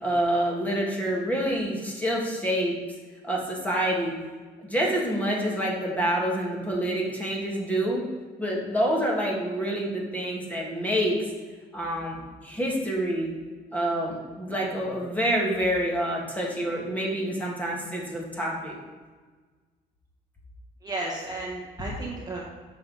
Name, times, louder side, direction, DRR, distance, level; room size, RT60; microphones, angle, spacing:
voice 1, 0.0-2.8 3.2-4.2 4.6-8.0 8.4-11.2 11.7-13.3 13.7-18.8, right 1 dB, 10° left, -3 dB, 1.8 m, -27 dB
voice 2, 20.8-22.4, right 2 dB, 25° right, -3 dB, 1.3 m, -33 dB
6.8 x 5.7 x 4.1 m, 1.4 s
cardioid pair, 110°, 17 cm